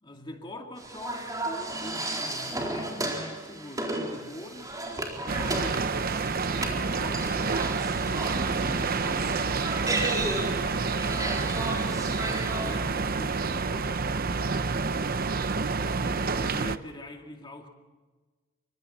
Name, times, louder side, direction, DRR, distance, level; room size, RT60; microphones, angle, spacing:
voice 1, 0.0-4.8 5.2-5.9 6.5-7.6 8.5-9.9 12.1-14.4 16.1-17.7, left 1 dB, 25° left, 2.4 m, -43 dB
sound 1, 0.8-12.8, right 2 dB, 20° right, 4.0 m, -34 dB
sound 2, 5.3-16.8, right 4 dB, 50° right, 0.8 m, -28 dB
28.0 x 24.5 x 4.3 m
head